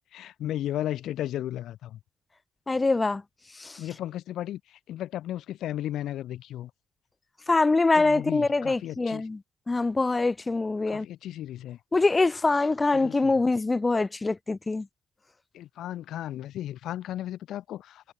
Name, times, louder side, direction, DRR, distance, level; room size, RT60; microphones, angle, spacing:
voice 1, 0.0-2.0 3.8-6.7 7.9-9.3 10.9-11.8 12.9-13.4 15.5-18.1, left 12 dB, 80° left, 1.4 m, -35 dB
voice 2, 2.7-3.2 3.6-3.8 7.5-9.4 9.7-11.1 11.9-14.9, left 3 dB, 20° left, 0.4 m, -24 dB
cardioid pair, 90°, 0 cm